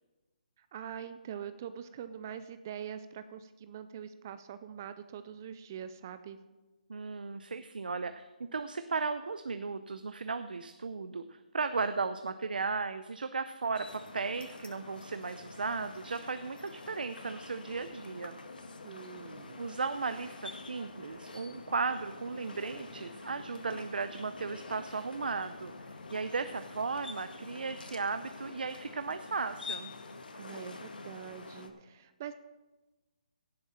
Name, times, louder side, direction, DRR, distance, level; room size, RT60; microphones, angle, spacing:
voice 1, 0.6-6.4 18.8-19.6 30.4-32.3, right 8 dB, 20° right, 11 dB, 0.3 m, -44 dB
voice 2, 6.9-18.4 19.6-25.7 26.1-29.9, right 4 dB, 90° right, 10 dB, 0.6 m, -36 dB
sound 1, 13.7-31.7, left 3 dB, 85° left, 1.7 m, -47 dB
17.0 x 7.7 x 4.3 m, 1.1 s
hypercardioid pair, 170°, 5 cm